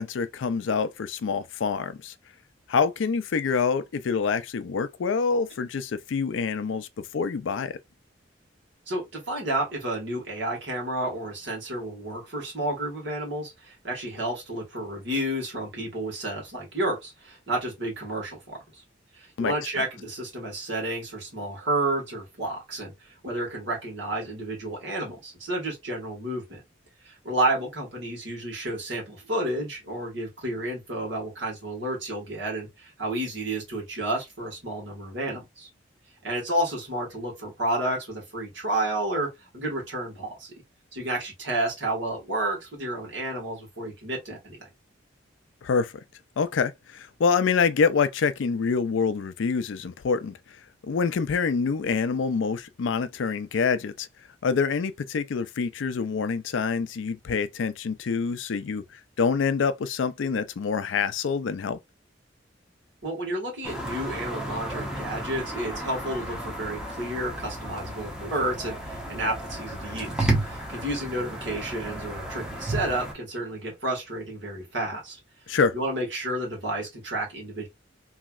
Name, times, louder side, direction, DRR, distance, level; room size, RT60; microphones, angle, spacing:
voice 1, 0.0-2.1 2.7-7.8 19.4-19.5 45.6-45.9 46.4-50.3 50.8-54.1 54.4-58.8 59.2-61.8 75.5-75.7, left 5 dB, 70° left, 0.4 m, -26 dB
voice 2, 8.9-18.6 19.1-26.6 27.0-35.7 36.2-40.5 40.9-44.6 63.0-75.2 75.5-77.7, right 1 dB, 65° right, 1.7 m, -31 dB
sound 1, 63.6-73.1, right 1 dB, 5° right, 0.8 m, -33 dB
3.1 x 2.7 x 2.4 m
head